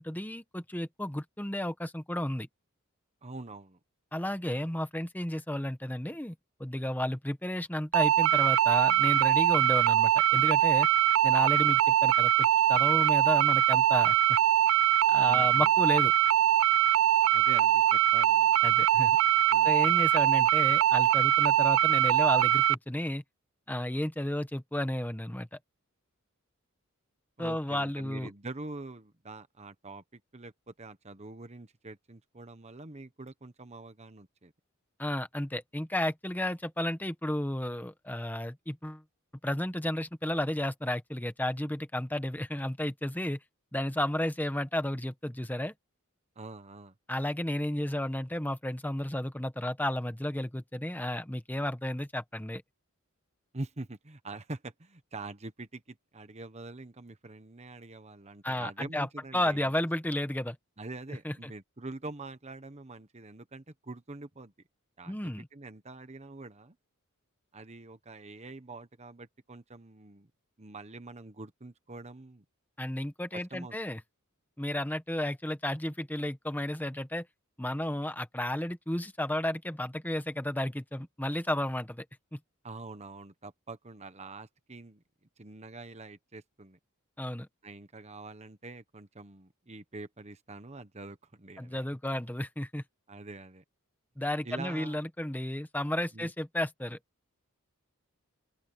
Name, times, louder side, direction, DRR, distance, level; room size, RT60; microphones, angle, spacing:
voice 1, 0.0-2.5 4.1-6.3 6.6-10.9 11.2-14.4 15.1-16.1 18.6-19.2 19.6-23.2 23.7-25.6 27.4-28.3 35.0-39.0 39.4-43.4 43.7-45.7 47.1-52.6 58.4-59.1 59.3-60.6 61.2-61.5 65.1-65.5 72.8-74.0 74.6-77.3 77.6-82.0 82.3-82.4 87.2-87.5 91.6-92.8 94.2-97.0, left 1 dB, 10° left, 1.2 m, -32 dB
voice 2, 3.2-3.8 15.2-15.7 17.3-18.5 19.5-19.8 27.4-34.5 46.4-46.9 53.5-59.7 60.8-64.5 65.0-66.8 67.5-70.3 70.6-72.4 73.3-73.7 82.6-85.0 85.4-86.8 87.6-91.8 93.1-93.6 94.4-95.0 96.1-96.3, right 2 dB, 30° right, 1.2 m, -45 dB
sound 1, 7.9-22.7, right 11 dB, 75° right, 0.4 m, -23 dB
open air
head